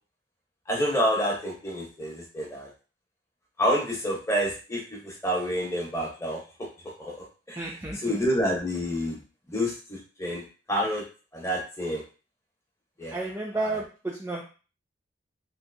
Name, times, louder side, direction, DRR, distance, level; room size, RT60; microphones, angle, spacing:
voice 1, 0.7-2.7 3.6-6.4 7.0-7.2 7.5-9.2 9.5-10.4 10.7-11.0 11.3-12.0 13.0-13.2 13.6-13.8, equal, 15° left, -3 dB, 1.0 m, -28 dB
voice 2, 7.6-8.2 13.1-14.4, right 2 dB, 15° right, -2 dB, 0.4 m, -32 dB
3.3 x 2.7 x 2.6 m, 0.35 s
head